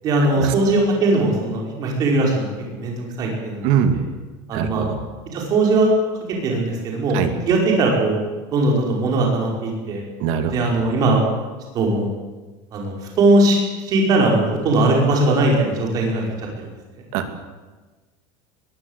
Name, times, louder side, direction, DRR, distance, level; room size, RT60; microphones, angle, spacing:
voice 1, 0.0-3.7 4.5-4.9 5.3-5.9 6.4-7.2 7.5-8.2 8.5-10.0 10.5-11.2 11.7-12.1 12.7-16.7, right 2 dB, 30° right, 0 dB, 5.2 m, -19 dB
voice 2, 3.6-4.0 4.5-5.0 7.1-7.3 10.2-10.5 17.1-17.3, right 8 dB, 55° right, 8 dB, 2.4 m, -22 dB
21.5 x 15.5 x 8.3 m, 1.3 s
cardioid pair, 180°, 12 cm